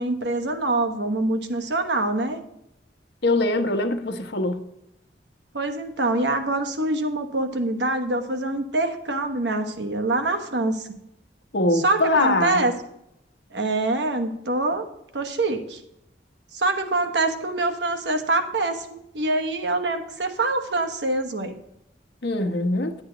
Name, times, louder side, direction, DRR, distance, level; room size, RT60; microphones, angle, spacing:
voice 1, 0.0-2.4 5.5-10.9 11.7-12.7 13.5-14.9 15.1-15.8 16.5-21.6, right 2 dB, 85° right, 7 dB, 1.2 m, -25 dB
voice 2, 3.2-4.6 11.5-12.7 22.2-22.9, left 2 dB, 75° left, 6 dB, 1.0 m, -22 dB
9.9 x 8.7 x 3.9 m, 0.82 s
head